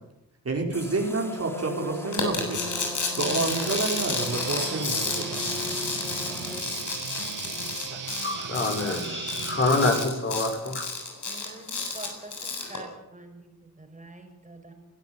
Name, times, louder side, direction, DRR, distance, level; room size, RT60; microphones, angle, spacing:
voice 1, 0.4-2.6 3.2-5.4, right 3 dB, 45° right, 4.5 m, -29 dB
sound 1, 0.7-6.6, left 1 dB, 5° left, 2.8 m, -39 dB
sound 2, 2.1-12.8, left 3 dB, 60° left, 7.4 m, -31 dB
sound 3, 3.2-10.0, right 7 dB, 65° right, 1.9 m, -37 dB
voice 2, 8.2-10.9, left 2 dB, 35° left, 6.5 m, -26 dB
voice 3, 11.3-14.7, right 2 dB, 20° right, 5.8 m, -46 dB
23.0 x 15.0 x 9.5 m
wide cardioid pair, 110°, 34 cm